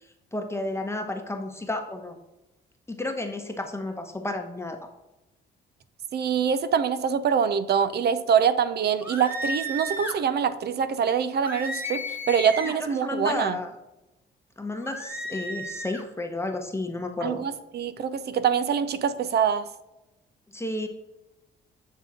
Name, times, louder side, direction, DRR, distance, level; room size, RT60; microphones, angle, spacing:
voice 1, 0.3-2.2 2.9-4.8 13.0-13.7 14.6-17.4 20.5-20.9, left 2 dB, 15° left, 4 dB, 0.9 m, -32 dB
voice 2, 6.1-13.6 17.2-19.7, right 7 dB, 55° right, 12 dB, 0.6 m, -24 dB
sound 1, 9.0-10.2 11.4-12.9 14.8-16.0, equal, 10° right, 1.2 m, -33 dB
7.2 x 3.6 x 3.7 m, 0.96 s
cardioid pair, 90°, 20 cm